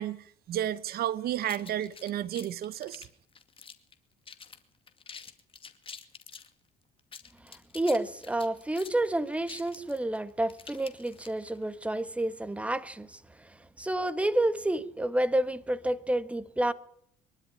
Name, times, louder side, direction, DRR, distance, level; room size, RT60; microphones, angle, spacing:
voice 1, 0.0-3.1, right 11 dB, 65° right, 0.9 m, -32 dB
sound 1, 1.4-3.9 4.3-4.6 4.9-6.5 7.0-11.6, left 6 dB, 30° left, 2.3 m, -47 dB
voice 2, 7.4-16.7, right 1 dB, 5° right, 1.5 m, -30 dB
23.5 x 12.5 x 9.8 m
cardioid pair, 110°, 17 cm